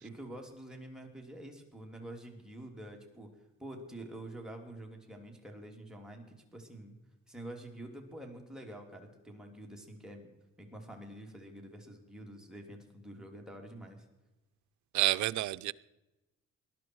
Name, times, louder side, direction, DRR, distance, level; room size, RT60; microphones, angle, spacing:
voice 1, 0.0-3.3 3.6-7.0 7.3-10.3 10.6-14.0, right 1 dB, ahead, 1 dB, 3.1 m, -47 dB
voice 2, 14.9-15.7, right 16 dB, 70° right, 16 dB, 0.5 m, -29 dB
19.0 x 11.5 x 4.7 m, 1.0 s
cardioid pair, 90°, 30 cm